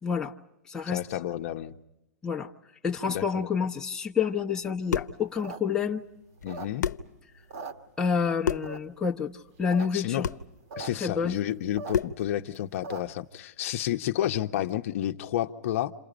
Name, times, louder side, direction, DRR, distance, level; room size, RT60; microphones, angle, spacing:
voice 1, 0.0-0.3 0.7-1.0 2.2-2.5 2.8-6.0 8.0-10.3 10.9-11.4, left 6 dB, 5° left, 1.1 m, -28 dB
voice 2, 0.9-1.7 3.1-3.5 6.4-6.9 9.9-10.2 10.8-15.9, left 12 dB, 50° left, 1.0 m, -30 dB
sound 1, 4.6-5.2 6.4-6.5 6.8-7.1 8.4-8.8 10.2-10.5 11.9-12.3, left 7 dB, 85° left, 0.9 m, -29 dB
sound 2, 5.2-7.1 7.4-8.3 8.6-9.1 9.5-9.9 10.1-10.2 10.4-10.9 11.2-13.2, right 4 dB, 55° right, 2.2 m, -41 dB
29.5 x 28.0 x 5.1 m
hypercardioid pair, 145°, 9 cm